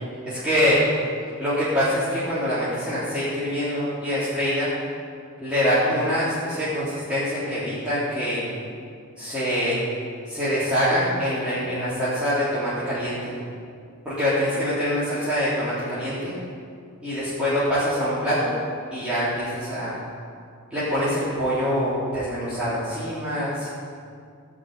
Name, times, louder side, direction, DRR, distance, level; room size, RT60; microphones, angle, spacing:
voice 1, 0.2-0.8 1.4-4.7 5.4-8.5 9.2-9.8 10.2-13.3 14.0-16.4 17.0-18.5 18.9-20.0 20.7-23.7, equal, 5° right, -14 dB, 3.4 m, -24 dB
16.0 x 5.5 x 8.9 m, 2.3 s
head